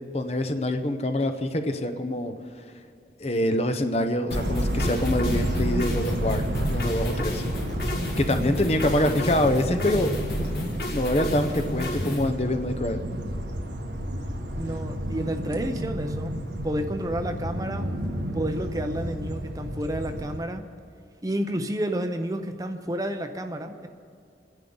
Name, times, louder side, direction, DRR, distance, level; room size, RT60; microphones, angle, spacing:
voice 1, 0.1-2.3 3.2-7.4 8.2-10.1 10.9-13.0, left 1 dB, 35° left, 7 dB, 0.8 m, -25 dB
sound 1, 4.3-12.3, left 1 dB, 55° left, 1.7 m, -33 dB
sound 2, 4.3-20.4, equal, 85° right, 1.3 m, -31 dB
voice 2, 14.6-17.9 18.3-20.7 21.2-23.9, right 1 dB, 20° right, 7 dB, 0.6 m, -30 dB
26.5 x 10.5 x 3.9 m, 2.3 s
head